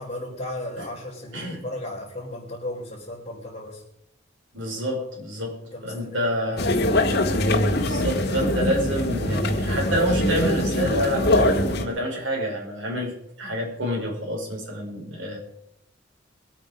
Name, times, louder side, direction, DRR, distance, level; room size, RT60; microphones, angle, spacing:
voice 1, 0.0-3.8 5.6-6.8, left 1 dB, 30° left, -7 dB, 4.1 m, -35 dB
voice 2, 1.3-1.6 4.5-5.6 5.8-6.7 7.8-15.4, equal, 70° right, -1 dB, 5.4 m, -28 dB
sound 1, 6.6-11.8, left 1 dB, 55° left, 1.7 m, -23 dB
23.0 x 8.7 x 5.2 m, 0.78 s
head